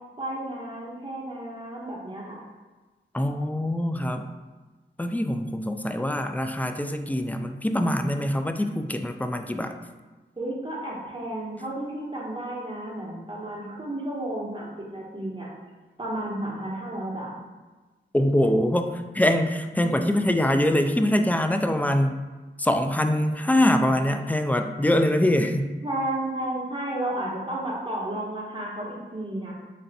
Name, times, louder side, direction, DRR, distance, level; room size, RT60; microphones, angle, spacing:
voice 1, 0.2-2.4 10.4-15.5 16.0-17.4 25.8-29.5, right 1 dB, 25° right, -4 dB, 1.2 m, -32 dB
voice 2, 3.1-4.3 5.0-9.8 18.1-22.2 22.6-25.7, left 1 dB, 10° left, 7 dB, 0.3 m, -24 dB
3.3 x 2.5 x 4.1 m, 1.2 s
cardioid pair, 45°, 20 cm